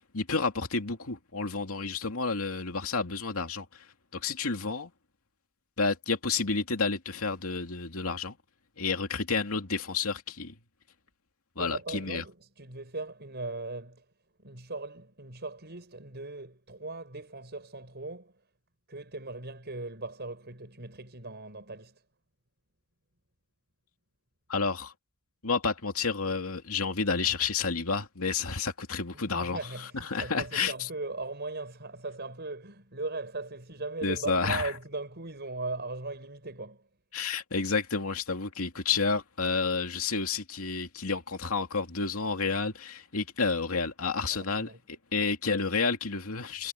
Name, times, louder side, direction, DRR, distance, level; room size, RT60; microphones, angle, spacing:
voice 1, 0.1-3.8 4.1-4.9 5.8-8.4 8.8-10.5 11.6-12.2 24.5-24.9 25.4-29.6 30.0-30.9 34.0-34.7 37.1-46.7, left 4 dB, 80° left, 2.6 m, -30 dB
voice 2, 11.6-14.0 14.4-18.3 18.9-22.0 29.1-36.8 44.3-44.8, right 2 dB, 50° right, 6.9 m, -39 dB
head